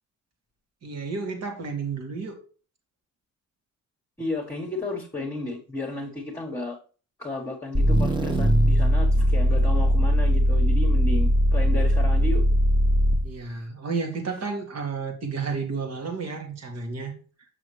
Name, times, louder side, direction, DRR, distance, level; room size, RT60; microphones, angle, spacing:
voice 1, 0.8-2.4 13.2-17.1, right 4 dB, 60° right, 4 dB, 1.9 m, -31 dB
voice 2, 4.2-6.8 7.2-12.4, left 2 dB, 10° left, -3 dB, 1.4 m, -33 dB
sound 1, 7.7-13.4, equal, 15° right, 0.8 m, -20 dB
6.2 x 6.2 x 3.2 m, 0.38 s
cardioid pair, 90°, 30 cm